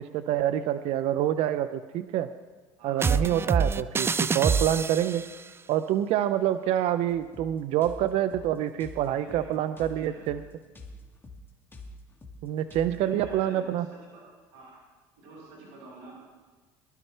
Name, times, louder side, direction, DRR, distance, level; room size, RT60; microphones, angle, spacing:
voice 1, 0.0-2.3 2.8-5.2 5.7-10.4 12.4-13.8, right 11 dB, 65° right, 11 dB, 0.6 m, -27 dB
voice 2, 2.8-3.2 9.0-10.3 13.0-14.2 14.5-14.8 15.2-16.2, right 3 dB, 80° right, -4 dB, 5.9 m, -47 dB
sound 1, 3.0-5.3, right 5 dB, 20° right, 0.5 m, -26 dB
sound 2, 7.1-13.4, left 2 dB, 20° left, 2.0 m, -47 dB
23.0 x 12.0 x 3.4 m, 1.3 s
supercardioid pair, 90°, 11 cm